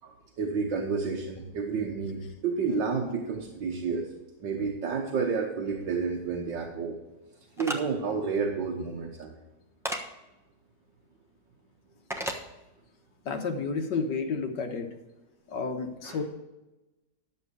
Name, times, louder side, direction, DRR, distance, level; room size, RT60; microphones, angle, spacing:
voice 1, 0.0-4.1 4.4-7.0 7.6-9.3 16.0-16.2, right 5 dB, 75° right, 0 dB, 1.8 m, -30 dB
sound 1, 7.6-7.8 9.8-10.0 12.1-12.4, equal, ahead, 0.7 m, -32 dB
voice 2, 13.3-14.9 15.5-16.2, left 4 dB, 70° left, 4 dB, 1.8 m, -31 dB
11.5 x 7.4 x 4.8 m, 1.0 s
omnidirectional pair, 2.0 m